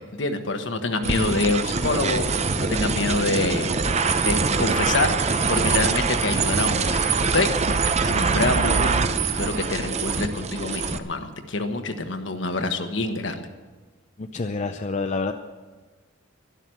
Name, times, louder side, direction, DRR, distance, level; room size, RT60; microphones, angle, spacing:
voice 1, 0.0-3.7 4.2-5.2 5.5-7.0 7.3-7.5 8.0-13.4, left 2 dB, 65° left, 6 dB, 1.3 m, -26 dB
voice 2, 1.0-1.4 8.3-8.6 14.2-15.3, left 3 dB, 35° left, 6 dB, 0.6 m, -28 dB
sound 1, 1.0-11.0, right 4 dB, 35° right, 0.7 m, -23 dB
12.0 x 11.5 x 7.7 m, 1.3 s
head